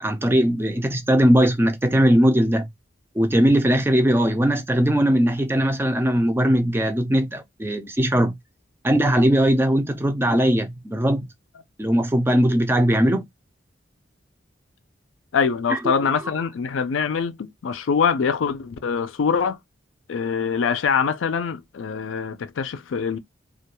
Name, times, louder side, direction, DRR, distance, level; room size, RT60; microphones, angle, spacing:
voice 1, 0.0-2.7 3.2-8.3 8.8-11.3 11.8-13.3 15.7-15.8, equal, 10° right, 0.4 m, -19 dB
voice 2, 15.3-19.6 20.1-23.2, left 6 dB, 85° left, 0.4 m, -24 dB
2.3 x 2.2 x 2.9 m
head